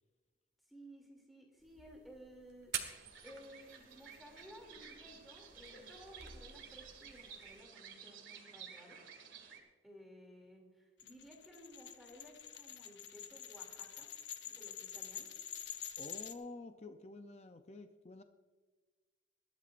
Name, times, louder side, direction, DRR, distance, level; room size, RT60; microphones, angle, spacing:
voice 1, 0.7-9.0 9.8-14.1 14.5-15.3, equal, ahead, -1 dB, 2.8 m, -57 dB
sound 1, 1.6-7.6, right 8 dB, 60° right, 1.5 m, -49 dB
sound 2, 2.8-9.6, right 7 dB, 80° right, 2.1 m, -54 dB
sound 3, 11.0-16.3, left 9 dB, 65° left, 0.9 m, -47 dB
voice 2, 16.0-18.2, left 2 dB, 35° left, 7 dB, 0.5 m, -49 dB
20.5 x 14.0 x 2.6 m, 1.3 s
head